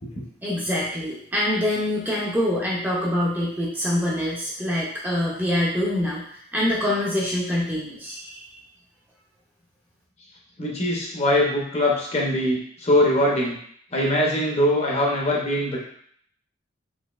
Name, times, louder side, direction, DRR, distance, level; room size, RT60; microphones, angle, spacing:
voice 1, 0.4-8.6, left 1 dB, 10° right, -5 dB, 0.5 m, -25 dB
voice 2, 10.6-13.6 13.9-15.8, left 1 dB, 30° left, -3 dB, 0.6 m, -22 dB
3.9 x 2.8 x 2.3 m, 0.63 s
head